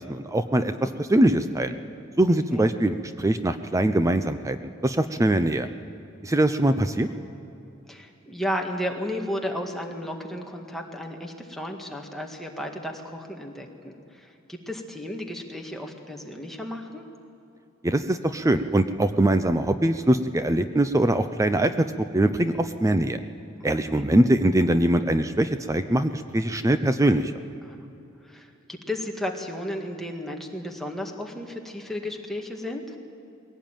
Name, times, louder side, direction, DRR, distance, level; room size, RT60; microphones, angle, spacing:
voice 1, 0.0-1.7 2.2-4.6 4.8-5.7 6.2-7.1 17.8-21.7 22.0-23.2 23.6-27.4, right 1 dB, 15° right, 10 dB, 0.6 m, -22 dB
voice 2, 0.5-0.9 2.5-2.6 7.9-17.0 23.6-24.0 27.6-27.9 28.2-33.0, left 1 dB, ahead, 1 dB, 1.9 m, -34 dB
21.5 x 17.0 x 9.0 m, 2.8 s
head